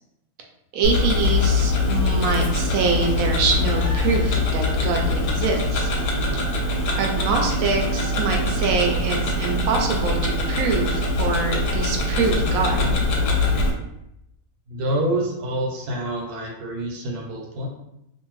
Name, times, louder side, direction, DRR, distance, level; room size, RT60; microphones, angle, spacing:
voice 1, 0.7-5.9 6.9-12.8, right 4 dB, 70° right, 2 dB, 0.9 m, -24 dB
Tick-tock, 0.8-13.7, left 2 dB, 90° left, 1.1 m, -23 dB
voice 2, 14.7-17.7, right 1 dB, 90° right, 0 dB, 1.2 m, -27 dB
2.6 x 2.5 x 3.0 m, 0.83 s
omnidirectional pair, 1.6 m